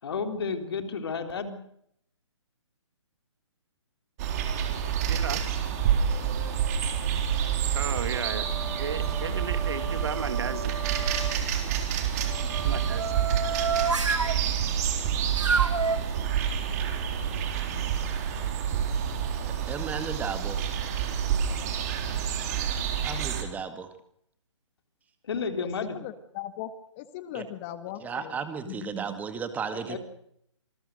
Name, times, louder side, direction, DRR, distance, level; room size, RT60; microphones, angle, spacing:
voice 1, 0.0-1.6 25.2-26.0 29.9-30.0, left 5 dB, 55° left, 7 dB, 3.8 m, -31 dB
sound 1, 4.2-23.4, right 8 dB, 35° right, 3.8 m, -28 dB
voice 2, 5.1-5.4 7.7-10.8 12.6-13.1, right 6 dB, 55° right, 12 dB, 2.4 m, -34 dB
sound 2, 6.0-6.8 7.4-11.4 12.2-14.4 15.4-16.0, right 4 dB, 70° right, 2.2 m, -32 dB
voice 3, 19.7-20.6 23.0-23.9 27.3-27.4 28.0-30.0, right 6 dB, 10° right, 9 dB, 2.1 m, -34 dB
voice 4, 25.8-26.7 27.0-28.4 28.7-28.9, left 13 dB, 25° left, 11 dB, 1.7 m, -38 dB
27.0 x 20.0 x 6.7 m, 0.71 s
figure-of-eight pair, 140°, 16 cm